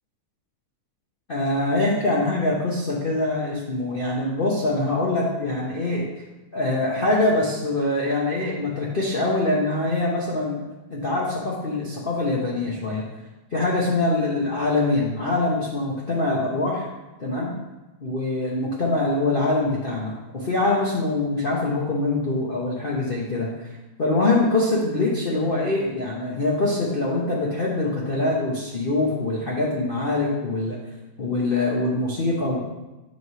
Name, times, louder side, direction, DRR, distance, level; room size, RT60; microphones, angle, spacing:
voice 1, 1.3-6.1 6.5-10.6 10.9-13.0 13.5-16.9 17.2-17.5 18.0-23.5 24.0-30.8 31.2-32.6, left 2 dB, 60° left, -5 dB, 0.5 m, -24 dB
7.7 x 3.2 x 5.5 m, 1.1 s
omnidirectional pair, 2.3 m